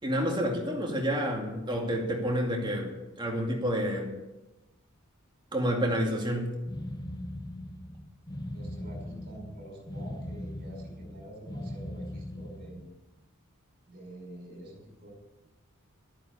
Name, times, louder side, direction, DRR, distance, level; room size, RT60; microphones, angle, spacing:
voice 1, 0.0-4.2 5.5-6.5, equal, 20° right, 0 dB, 2.4 m, -29 dB
sound 1, 6.7-13.0, left 1 dB, 20° left, 0.7 m, -40 dB
voice 2, 8.5-12.8 13.9-15.1, right 1 dB, 45° right, 0 dB, 5.5 m, -47 dB
12.5 x 10.0 x 6.8 m, 1.0 s
head